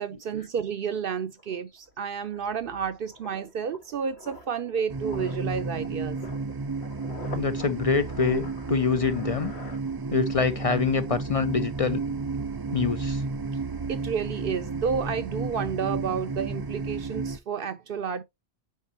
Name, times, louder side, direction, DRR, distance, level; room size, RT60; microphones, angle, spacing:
voice 1, 0.0-6.2 13.9-18.2, right 6 dB, 65° right, 0.7 m, -31 dB
sound 1, 1.0-1.1 1.4-10.4 10.7-11.0, left 2 dB, 85° left, 1.7 m, -46 dB
sound 2, 4.9-17.4, right 4 dB, 35° right, 0.4 m, -32 dB
voice 2, 7.3-9.5 10.1-12.2 12.7-13.2, left 5 dB, 45° left, 0.5 m, -25 dB
9.3 x 4.1 x 2.8 m
omnidirectional pair, 1.1 m